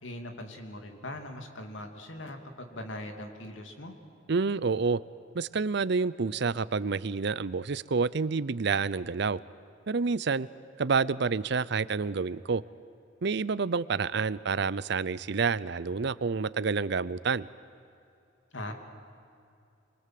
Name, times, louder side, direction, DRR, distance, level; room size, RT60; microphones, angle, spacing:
voice 1, 0.0-4.0 18.5-18.7, left 1 dB, 80° left, 4 dB, 2.7 m, -41 dB
voice 2, 4.3-5.0 5.3-9.4 9.9-10.5 10.8-12.6 13.2-17.5, right 4 dB, 60° right, 18 dB, 0.6 m, -28 dB
27.5 x 23.0 x 7.7 m, 2.6 s
head